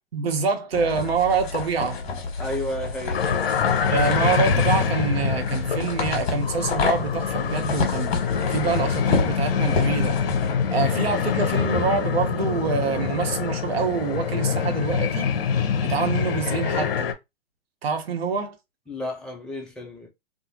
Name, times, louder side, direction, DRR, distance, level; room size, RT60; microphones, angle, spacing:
voice 1, 0.1-2.0 3.9-8.2 8.5-10.2 10.7-15.3 15.8-17.1 17.8-18.5, right 5 dB, 75° right, 1.0 m, -26 dB
sound 1, 0.7-10.5, left 4 dB, 50° left, 1.3 m, -29 dB
voice 2, 2.4-3.2 18.9-20.1, left 1 dB, ahead, 0.4 m, -32 dB
sound 2, 3.1-17.1, left 6 dB, 65° left, 0.7 m, -25 dB
2.6 x 2.4 x 2.8 m
hypercardioid pair, 120°, 31 cm